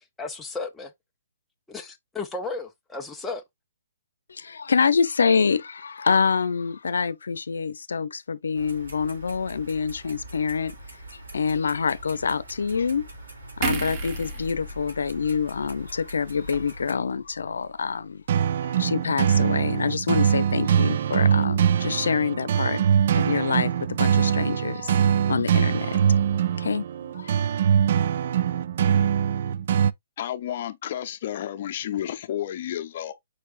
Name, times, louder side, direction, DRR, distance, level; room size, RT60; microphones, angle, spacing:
voice 1, 0.2-0.9 1.7-3.4, left 3 dB, 5° left, 0.5 m, -34 dB
voice 2, 4.3-10.7 11.1-13.0 13.6-18.2 18.8-22.8 23.1-26.2 26.6-26.9 27.1-27.4, left 5 dB, 85° left, 0.6 m, -26 dB
Clock, 8.5-16.9, right 1 dB, 80° right, 3.4 m, -43 dB
sound 1, 13.6-17.0 17.3-17.5, right 4 dB, 25° right, 1.0 m, -34 dB
sound 2, 18.3-29.9, right 8 dB, 50° right, 0.3 m, -23 dB
voice 3, 30.2-33.1, left 11 dB, 40° left, 0.7 m, -31 dB
4.7 x 4.6 x 2.4 m
hypercardioid pair, 160°, 0 cm